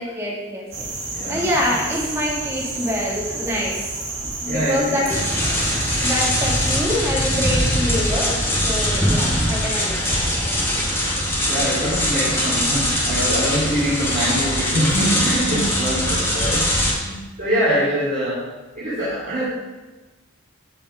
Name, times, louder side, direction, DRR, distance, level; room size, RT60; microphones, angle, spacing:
voice 1, 0.0-0.9 1.3-4.0 4.4-5.1 6.0-10.2, equal, 10° right, -4 dB, 2.5 m, -25 dB
sound 1, 0.7-6.8, right 3 dB, 65° right, 3.6 m, -30 dB
voice 2, 1.1-1.5 4.4-5.2 11.4-18.4 18.7-19.4, equal, 35° right, -10 dB, 3.3 m, -24 dB
sound 2, 5.1-16.9, equal, 10° left, 2.1 m, -21 dB
16.0 x 5.4 x 5.2 m, 1.2 s
head